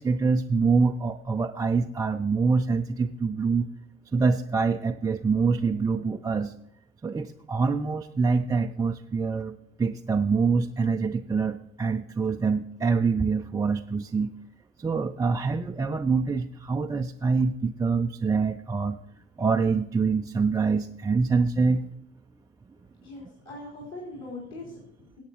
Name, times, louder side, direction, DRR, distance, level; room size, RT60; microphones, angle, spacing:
voice 1, 0.0-3.7 4.1-6.5 7.0-14.3 14.8-19.0 19.4-21.8, right 4 dB, 10° right, 4 dB, 0.3 m, -25 dB
voice 2, 23.0-25.2, left 2 dB, 45° left, -5 dB, 3.8 m, -41 dB
17.5 x 8.6 x 2.9 m, 0.79 s
figure-of-eight pair, 60°, 36 cm